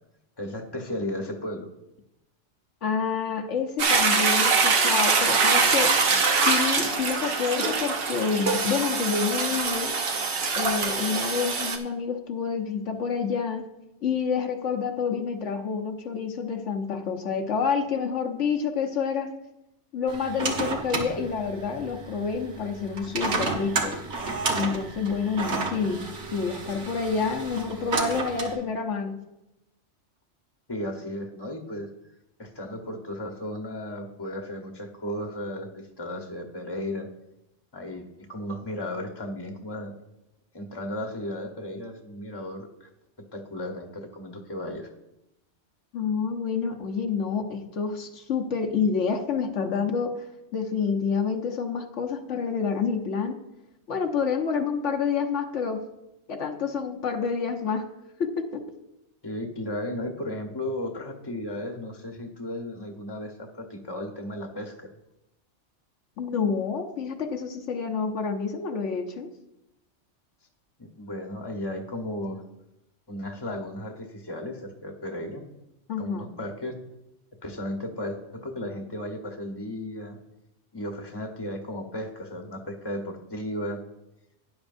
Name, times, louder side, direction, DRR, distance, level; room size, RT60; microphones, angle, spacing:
voice 1, 0.4-1.7 30.7-31.9 32.4-37.1 37.7-40.0 40.5-42.9 43.3-44.9 59.2-64.9 70.8-72.4 73.1-75.4 76.0-76.7 77.4-80.2 80.7-83.9, left 1 dB, 20° left, 3 dB, 1.1 m, -35 dB
voice 2, 2.8-5.9 6.4-9.9 10.5-13.7 14.0-19.3 19.9-24.0 24.5-29.2 45.9-50.1 50.5-53.4 53.9-55.8 56.3-57.9 58.2-58.6 66.2-69.3 75.9-76.3, left 6 dB, 80° left, 4 dB, 1.3 m, -28 dB
Toilet flush, 3.8-11.8, right 4 dB, 55° right, 1.1 m, -23 dB
sound 1, 20.1-28.5, right 3 dB, 70° right, 1.6 m, -32 dB
12.5 x 10.0 x 2.6 m, 0.91 s
omnidirectional pair, 1.2 m